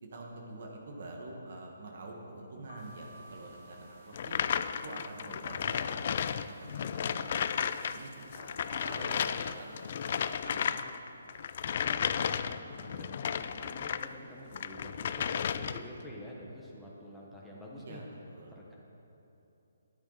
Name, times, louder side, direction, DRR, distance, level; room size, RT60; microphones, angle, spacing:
voice 1, 0.0-4.4 4.8-9.7 10.0-10.8 11.2-11.4 17.8-18.6, right 2 dB, 55° right, 0 dB, 1.5 m, -46 dB
Keyboard (musical), 2.7-5.2, left 1 dB, 65° left, 0.8 m, -55 dB
sound 1, 2.7-10.3, right 2 dB, 35° right, 2.1 m, -58 dB
sound 2, 4.1-8.0 8.2-14.1 14.5-16.0, left 8 dB, 40° left, 0.3 m, -33 dB
voice 2, 11.8-18.0 18.5-18.7, left 1 dB, ahead, -6 dB, 1.1 m, -48 dB
13.0 x 9.9 x 4.0 m, 2.9 s
hypercardioid pair, 165°, 0 cm